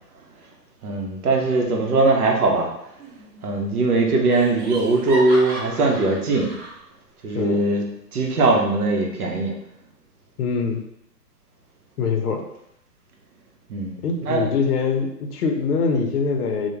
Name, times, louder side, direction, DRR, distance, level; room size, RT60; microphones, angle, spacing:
voice 1, 0.8-2.7 3.4-6.5 7.2-7.8 8.1-9.5 13.7-14.4, right 3 dB, 65° right, 1 dB, 0.8 m, -20 dB
Laughter, 3.0-3.5 3.8-3.9 4.3-6.8, right 1 dB, 30° right, 0.8 m, -35 dB
voice 2, 10.4-10.8 12.0-12.4 14.0-16.7, left 5 dB, 65° left, 4 dB, 0.6 m, -23 dB
2.3 x 2.1 x 3.0 m, 0.78 s
hypercardioid pair, 135°, 49 cm